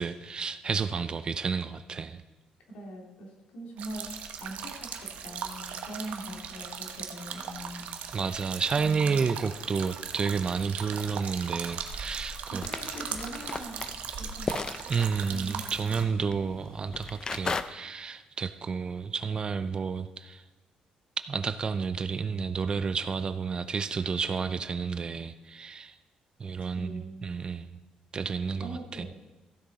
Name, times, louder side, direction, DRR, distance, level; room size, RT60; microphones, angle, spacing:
voice 1, 0.0-2.2 8.1-12.6 14.9-20.4 21.3-25.9 26.4-27.6 28.1-28.7, right 5 dB, 35° right, 11 dB, 0.4 m, -31 dB
voice 2, 2.7-4.1 4.4-8.0 12.4-13.8 14.2-14.6 15.3-16.3 26.7-27.2 28.6-29.1, right 1 dB, 90° left, 0 dB, 2.4 m, -42 dB
sound 1, 3.8-16.0, right 7 dB, 75° right, 1.0 m, -39 dB
sound 2, 12.6-17.6, left 4 dB, 30° left, 0.5 m, -37 dB
15.0 x 6.6 x 4.1 m, 1.2 s
cardioid pair, 110°, 2 cm